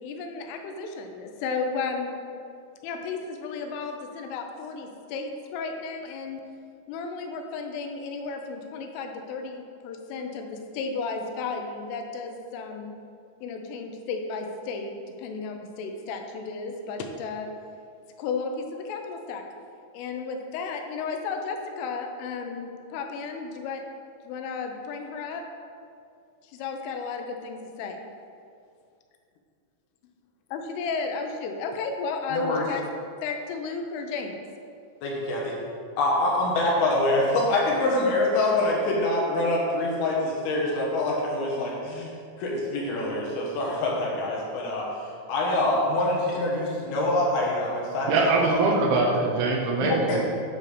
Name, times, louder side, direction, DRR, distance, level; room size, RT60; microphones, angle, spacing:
voice 1, 0.0-2.1 2.8-6.4 6.9-12.9 13.4-17.5 18.2-19.4 19.9-23.8 24.2-25.4 26.4-28.0 30.5-32.8 33.2-34.4, left 4 dB, 85° left, 4 dB, 3.3 m, -33 dB
voice 2, 32.3-32.6 35.0-35.6 36.0-42.1 42.4-48.1 48.5-48.6 49.8-50.2, left 2 dB, 65° left, -3 dB, 2.7 m, -25 dB
voice 3, 48.1-50.2, right 3 dB, 75° right, 0 dB, 3.0 m, -23 dB
9.8 x 3.9 x 6.6 m, 2.4 s
omnidirectional pair, 5.7 m